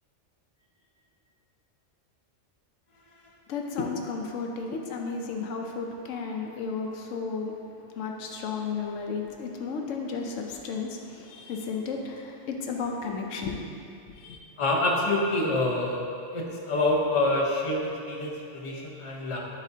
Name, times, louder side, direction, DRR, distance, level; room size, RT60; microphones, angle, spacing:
voice 1, 3.5-7.5 8.0-13.8 14.1-14.4, left 4 dB, 85° left, 2 dB, 1.0 m, -33 dB
voice 2, 14.6-16.0 16.3-19.4, left 2 dB, 30° left, -3 dB, 0.8 m, -26 dB
10.5 x 4.0 x 2.7 m, 2.5 s
omnidirectional pair, 1.3 m